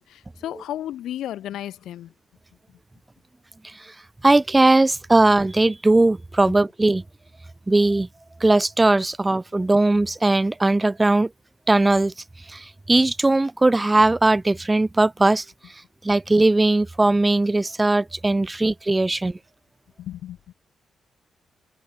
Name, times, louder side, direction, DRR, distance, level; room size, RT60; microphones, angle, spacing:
voice 1, 0.0-2.1 20.0-20.5, left 12 dB, 80° left, 1.1 m, -34 dB
voice 2, 3.6-3.9 4.2-7.0 7.7-8.1 8.4-11.3 11.7-12.1 12.5-15.5 16.0-19.4, right 2 dB, 20° right, 0.4 m, -19 dB
supercardioid pair, 55°, 0 cm